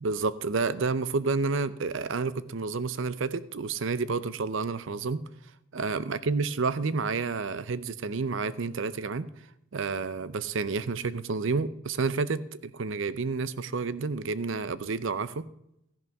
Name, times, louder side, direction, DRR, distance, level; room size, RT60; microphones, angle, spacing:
voice 1, 0.0-5.2 5.7-9.3 9.7-15.5, right 4 dB, 65° right, 16 dB, 0.6 m, -30 dB
13.5 x 11.0 x 3.5 m, 0.80 s
head